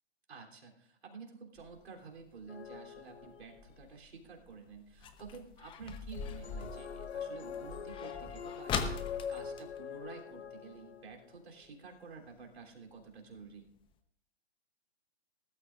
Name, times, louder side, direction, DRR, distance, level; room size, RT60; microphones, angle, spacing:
voice 1, 0.3-13.7, right 4 dB, 70° right, 1 dB, 3.4 m, -51 dB
Creaky Screen door, 1.6-10.8 11.1-11.2 11.5-11.9 12.4-12.5 13.0-13.1 13.4-13.5 13.9-14.0, left 5 dB, 15° left, 0.9 m, -42 dB
sound 1, 2.5-3.8 6.1-11.4, left 7 dB, 75° left, 1.0 m, -43 dB
20.0 x 12.5 x 2.5 m, 0.70 s
hypercardioid pair, 135°, 33 cm